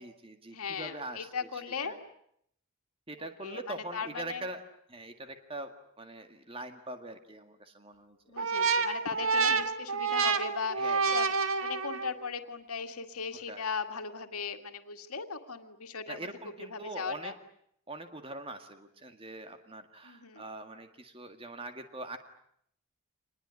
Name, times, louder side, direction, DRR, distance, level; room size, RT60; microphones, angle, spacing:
voice 1, 0.0-1.9 3.1-4.6 4.9-8.7 9.5-9.6 10.8-11.2 13.3-13.6 16.1-17.3 17.9-22.2, right 2 dB, 25° right, 7 dB, 1.9 m, -43 dB
voice 2, 0.5-2.0 3.4-4.4 8.3-11.3 11.6-16.2 16.6-17.3 20.0-20.4, left 5 dB, 90° left, 5 dB, 2.0 m, -38 dB
sound 1, 8.4-12.3, right 5 dB, 70° right, 1.7 m, -28 dB
27.0 x 21.0 x 9.7 m, 0.72 s
head